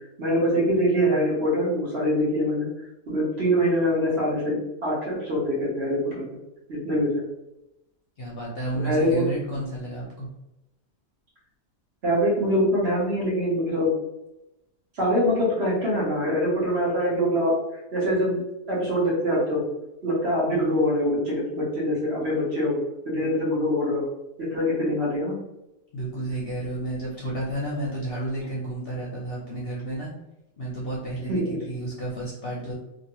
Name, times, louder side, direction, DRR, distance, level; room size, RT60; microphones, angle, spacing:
voice 1, 0.2-2.7 3.1-6.2 6.7-7.2 8.7-9.3 12.0-13.9 14.9-17.5 17.9-18.4 18.7-19.7 20.0-22.8 23.0-24.0 24.4-25.4 31.3-31.6, equal, 50° right, -6 dB, 1.2 m, -24 dB
voice 2, 8.2-10.3 25.9-30.1 30.6-32.7, right 1 dB, 55° left, -4 dB, 0.7 m, -31 dB
2.8 x 2.7 x 2.9 m, 0.91 s
omnidirectional pair, 1.5 m